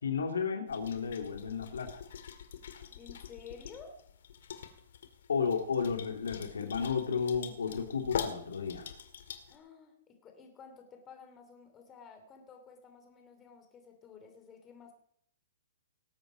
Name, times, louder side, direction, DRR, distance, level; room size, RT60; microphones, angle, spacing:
voice 1, 0.0-2.0 5.3-8.9, left 6 dB, 85° left, 4 dB, 2.7 m, -33 dB
sound 1, 0.7-9.6, left 8 dB, 70° left, 2.1 m, -44 dB
voice 2, 2.9-4.0 9.5-14.9, left 6 dB, 20° left, 5 dB, 2.9 m, -52 dB
19.0 x 8.8 x 5.2 m, 0.67 s
hypercardioid pair, 140°, 0 cm